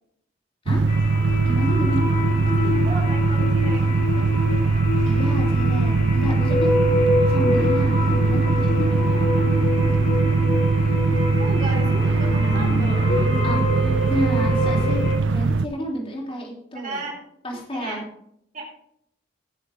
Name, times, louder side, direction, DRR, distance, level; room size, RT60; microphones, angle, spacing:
sound 1, 0.7-15.7, right 3 dB, 90° right, 0.5 m, -21 dB
sound 2, 0.9-15.2, left 1 dB, 50° left, 2.6 m, -26 dB
voice 1, 1.4-2.2 5.1-6.7 7.0-9.5 13.4-17.1 17.4-18.0, equal, 30° left, -2 dB, 3.5 m, -30 dB
voice 2, 2.4-4.1 11.4-13.1 16.8-17.2 17.7-18.0 18.5-18.7, right 2 dB, 45° right, -1 dB, 3.5 m, -33 dB
17.5 x 7.0 x 3.7 m, 0.71 s
head